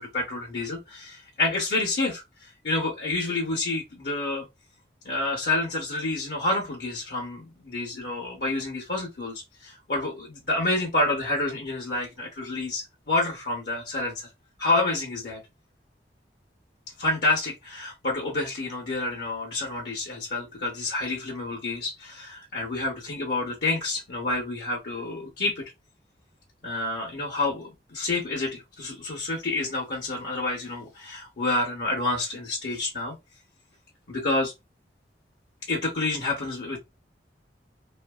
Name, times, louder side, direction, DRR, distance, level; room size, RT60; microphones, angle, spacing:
voice 1, 0.0-2.2 2.6-4.5 5.0-14.3 14.6-15.4 17.0-25.6 26.6-33.2 34.1-34.5 35.7-36.8, left 2 dB, 70° left, 0.9 m, -28 dB
2.6 x 2.6 x 2.3 m
head